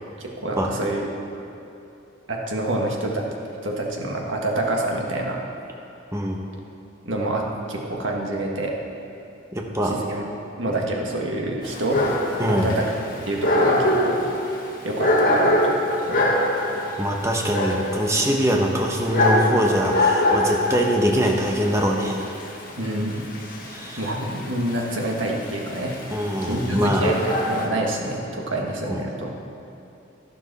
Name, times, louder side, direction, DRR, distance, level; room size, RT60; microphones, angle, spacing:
voice 1, 0.2-1.1 2.3-3.3 3.6-5.4 7.0-8.7 9.8-10.3 10.6-12.0 12.4-12.9 13.3-14.5 14.8-15.8 16.1-16.4 22.8-23.2 24.0-25.9 26.4-29.3, right 1 dB, 75° right, -1 dB, 1.7 m, -27 dB
voice 2, 9.5-10.0 12.4-12.8 17.0-22.3 23.6-24.1 26.1-27.1 28.9-29.0, equal, 15° right, 0 dB, 1.0 m, -23 dB
Dog, 11.6-27.7, left 1 dB, 45° left, 1.8 m, -24 dB
12.5 x 11.5 x 4.2 m, 2.8 s
head